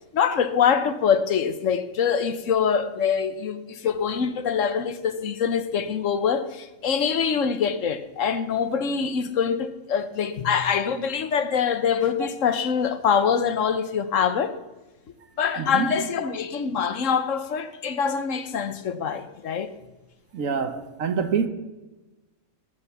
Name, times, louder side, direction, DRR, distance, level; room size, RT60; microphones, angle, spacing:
voice 1, 0.1-14.5 15.4-19.7, left 7 dB, 65° left, 1.3 m, -24 dB
voice 2, 15.6-15.9 20.3-21.5, right 6 dB, 70° right, 1.4 m, -26 dB
20.5 x 7.1 x 7.0 m
omnidirectional pair, 1.5 m